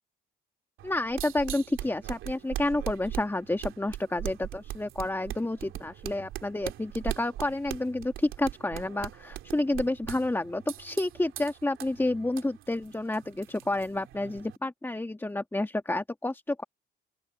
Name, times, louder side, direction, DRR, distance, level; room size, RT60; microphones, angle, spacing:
voice 1, 0.8-16.6, left 2 dB, 10° left, 1.8 m, -30 dB
sound 1, 0.8-14.6, right 13 dB, 85° right, 2.9 m, -40 dB
open air
cardioid pair, 90°, 20 cm